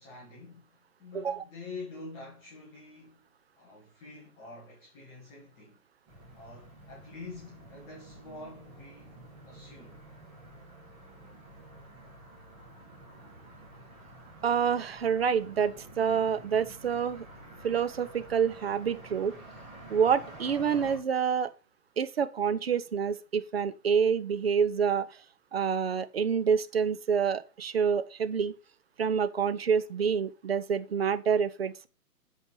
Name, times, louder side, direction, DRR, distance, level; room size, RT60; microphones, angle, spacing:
voice 1, 0.0-3.2 3.6-5.8 6.3-9.2 9.5-10.0, left 3 dB, 5° left, 0.8 m, -46 dB
sound 1, 6.1-21.0, right 1 dB, 15° right, 2.1 m, -49 dB
voice 2, 14.4-17.3 17.6-19.3 19.9-21.5 22.0-25.1 25.5-28.6 29.0-31.9, right 7 dB, 40° right, 0.6 m, -27 dB
8.2 x 4.6 x 5.3 m
hypercardioid pair, 165°, 46 cm